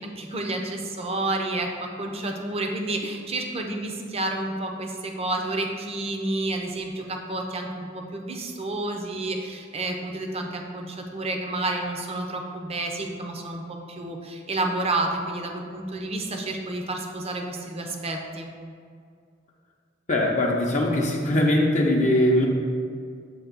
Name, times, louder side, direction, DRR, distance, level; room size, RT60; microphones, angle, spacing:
voice 1, 0.0-18.5, right 2 dB, 30° right, 2 dB, 0.7 m, -30 dB
voice 2, 20.1-22.5, left 1 dB, 40° left, -1 dB, 0.7 m, -21 dB
7.8 x 2.9 x 6.0 m, 2.2 s
head